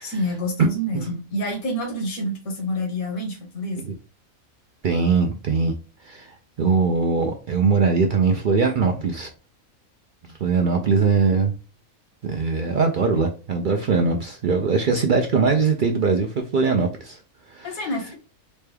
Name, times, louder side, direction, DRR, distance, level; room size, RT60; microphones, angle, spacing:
voice 1, 0.0-3.8 17.6-18.1, equal, 75° left, 0 dB, 1.6 m, -28 dB
voice 2, 4.8-5.8 6.0-9.3 10.2-11.5 12.2-17.2 17.5-17.8, right 4 dB, 75° right, 3 dB, 0.4 m, -21 dB
4.1 x 2.2 x 3.3 m, 0.34 s
omnidirectional pair, 1.5 m